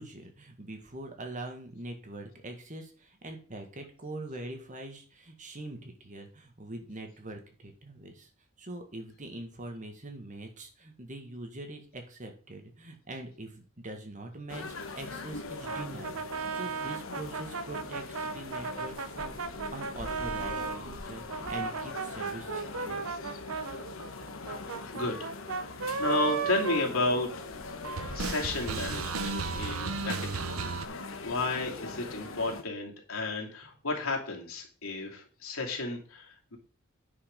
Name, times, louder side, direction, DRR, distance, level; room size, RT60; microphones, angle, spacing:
voice 1, 0.0-8.3 8.6-19.4 19.7-23.0, right 2 dB, 35° right, 4 dB, 1.8 m, -43 dB
sound 1, 14.5-32.6, left 3 dB, 70° left, 1.2 m, -42 dB
sound 2, 15.6-20.8 21.3-27.6 27.8-30.9, right 5 dB, 80° right, 0.8 m, -35 dB
voice 2, 24.6-25.6 26.0-27.3 28.1-30.2 30.5-30.7 31.2-36.6, left 2 dB, 85° left, -1 dB, 2.8 m, -32 dB
9.7 x 5.2 x 5.3 m, 0.40 s
head